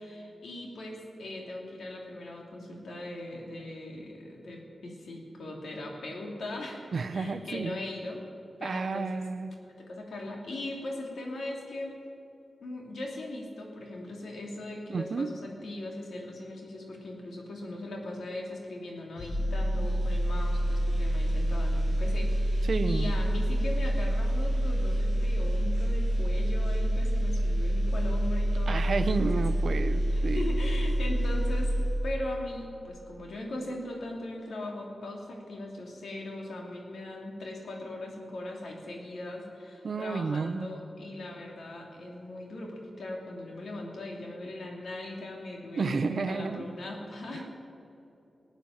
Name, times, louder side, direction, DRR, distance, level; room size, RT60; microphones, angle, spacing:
voice 1, 0.0-8.2 8.6-9.2 9.6-11.9 12.6-29.4 30.1-31.7 32.0-47.5, left 1 dB, 90° left, 0 dB, 2.8 m, -39 dB
voice 2, 6.9-7.8 8.6-9.5 14.9-15.3 22.7-23.1 28.7-30.6 39.8-40.7 45.7-46.7 47.3-47.4, right 4 dB, 65° right, 11 dB, 0.7 m, -31 dB
sound 1, 19.2-32.3 32.6-32.8, equal, 65° left, 4.7 m, -27 dB
18.5 x 9.2 x 7.3 m, 2.8 s
wide cardioid pair, 110°, 0 cm